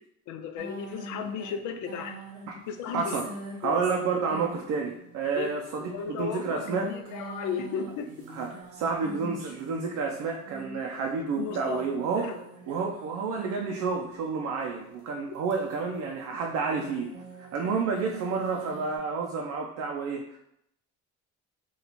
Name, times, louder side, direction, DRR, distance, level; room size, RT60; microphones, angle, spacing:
voice 1, 0.3-2.2 2.7-3.2 3.6-3.8 5.4-8.1 11.4-11.8 12.1-12.4, left 7 dB, 75° left, 6 dB, 0.5 m, -35 dB
sound 1, 0.6-14.7 15.4-19.0, right 1 dB, 90° right, 1.0 m, -45 dB
voice 2, 2.9-3.3 3.6-6.9 8.3-12.3 12.7-17.1 17.4-20.2, right 5 dB, 65° right, 1 dB, 0.5 m, -30 dB
2.9 x 2.3 x 4.0 m, 0.78 s
cardioid pair, 165°, 30 cm